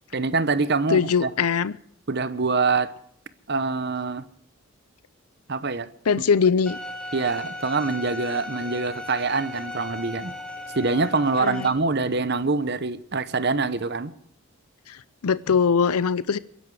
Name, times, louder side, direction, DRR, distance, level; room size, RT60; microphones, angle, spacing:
voice 1, 0.1-1.3 2.1-2.9 3.5-4.3 5.5-5.9 7.1-10.3 10.7-14.1, right 4 dB, 50° right, 0.9 m, -25 dB
voice 2, 0.9-1.7 6.1-6.8 11.4-11.7 14.9-16.4, left 6 dB, 90° left, 0.6 m, -22 dB
Bowed string instrument, 6.7-11.7, left 1 dB, 5° left, 1.6 m, -36 dB
23.5 x 11.0 x 4.8 m
head